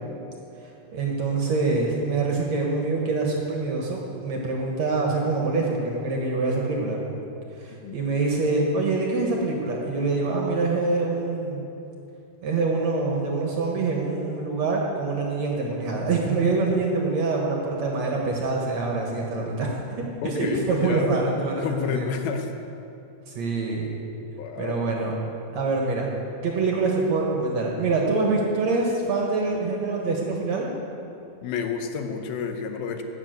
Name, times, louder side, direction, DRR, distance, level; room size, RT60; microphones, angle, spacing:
voice 1, 0.6-7.0 7.6-11.7 12.4-22.1 23.3-23.9 24.6-25.2 25.5-26.1 26.4-30.7, right 3 dB, 55° right, -1 dB, 2.2 m, -25 dB
voice 2, 20.2-21.2 21.6-22.5 24.4-25.0 31.4-33.0, left 6 dB, 80° left, 5 dB, 2.8 m, -29 dB
13.5 x 8.1 x 9.2 m, 2.8 s
omnidirectional pair, 4.3 m